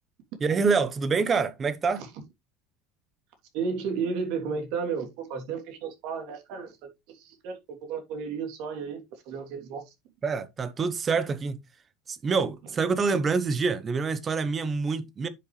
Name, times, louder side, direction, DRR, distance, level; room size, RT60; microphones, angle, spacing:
voice 1, 0.4-2.0 10.2-11.6 12.1-15.3, right 4 dB, 20° right, 1.0 m, -26 dB
voice 2, 3.5-9.9, right 5 dB, 60° right, 3.0 m, -33 dB
10.0 x 6.2 x 3.2 m
cardioid pair, 160°, 0 cm